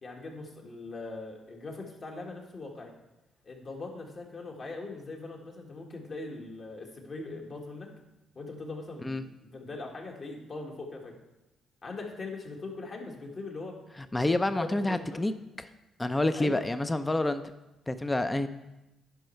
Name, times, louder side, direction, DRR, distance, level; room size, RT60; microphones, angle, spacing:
voice 1, 0.0-2.9 3.4-7.9 8.4-11.1 11.8-13.8 14.6-15.2 16.3-16.6, left 3 dB, 45° left, 1 dB, 1.8 m, -41 dB
voice 2, 14.1-15.3 15.6-15.7 16.0-17.4 17.9-18.5, left 2 dB, 15° left, 10 dB, 0.5 m, -28 dB
10.5 x 5.4 x 4.5 m, 0.96 s
cardioid pair, 90°, 0 cm